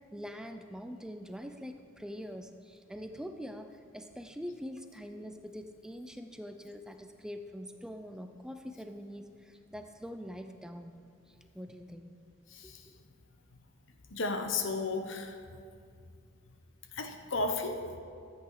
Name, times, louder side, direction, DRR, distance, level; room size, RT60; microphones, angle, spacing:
voice 1, 0.1-10.9 11.3-12.1 12.9-13.0, equal, 5° right, 6 dB, 0.4 m, -44 dB
voice 2, 14.1-15.3 16.9-18.0, left 3 dB, 75° left, 6 dB, 1.0 m, -33 dB
13.0 x 8.3 x 4.8 m, 2.3 s
head